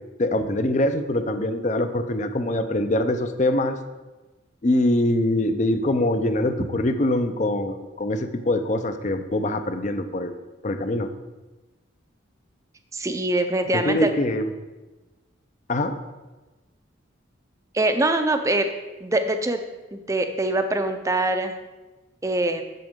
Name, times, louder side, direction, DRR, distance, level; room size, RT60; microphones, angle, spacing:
voice 1, 0.2-3.8 4.6-10.3 10.6-11.1 13.7-14.5 15.7-15.9, left 1 dB, 35° left, 9 dB, 0.5 m, -23 dB
voice 2, 12.9-14.1 17.7-18.7 19.0-19.6 19.9-21.5 22.2-22.6, right 2 dB, 15° right, 7 dB, 0.5 m, -23 dB
7.7 x 7.2 x 3.7 m, 1.2 s
head